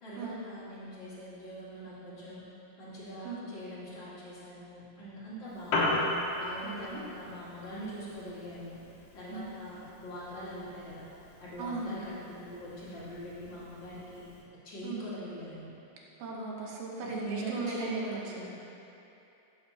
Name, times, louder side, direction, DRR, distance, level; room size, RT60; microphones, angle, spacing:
voice 1, 0.0-2.4 2.8-6.1 6.3-8.8 9.1-11.1 11.4-14.2 14.6-15.7 17.0-18.5, right 1 dB, 45° left, -9 dB, 1.5 m, -42 dB
Piano, 5.5-14.4, left 2 dB, 65° left, 2.3 m, -38 dB
voice 2, 6.6-7.0 9.3-9.5 11.6-12.0 14.8-15.0 16.2-18.0, right 3 dB, 70° right, -3 dB, 2.7 m, -37 dB
14.5 x 7.6 x 2.9 m, 2.8 s
omnidirectional pair, 5.2 m